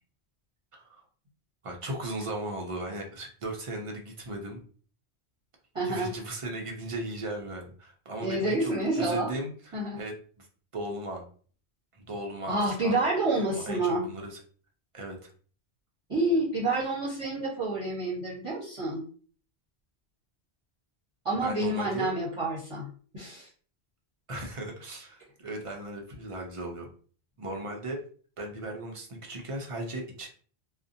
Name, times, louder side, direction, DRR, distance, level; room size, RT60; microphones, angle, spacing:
voice 1, 1.6-4.6 5.8-10.5 10.7-11.2 11.9-13.0 13.5-14.4 14.9-15.3 21.4-22.1 24.3-26.9 27.4-28.0 28.4-30.3, right 1 dB, 50° right, 1 dB, 0.4 m, -37 dB
voice 2, 5.7-6.1 8.2-9.3 9.7-10.0 12.5-14.1 16.1-19.0 21.2-22.9 23.1-23.5, right 2 dB, 30° right, -10 dB, 0.9 m, -28 dB
2.6 x 2.1 x 2.5 m, 0.43 s
omnidirectional pair, 1.1 m